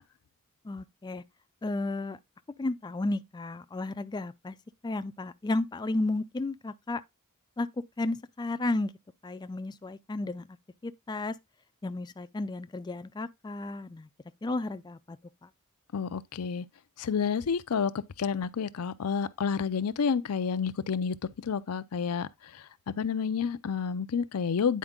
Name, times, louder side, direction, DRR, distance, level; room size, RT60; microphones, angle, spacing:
voice 1, 0.6-1.2 1.6-2.2 2.6-4.6 4.8-7.0 7.6-7.7 8.0-8.9 9.2-10.5 10.8-11.3 11.8-14.1 14.4-15.2 15.4-15.5, left 2 dB, 20° left, 0.3 m, -33 dB
voice 2, 15.9-16.7 17.0-17.9 18.2-21.2 21.4-24.8, left 6 dB, 80° left, 0.5 m, -30 dB
9.4 x 4.4 x 3.7 m
head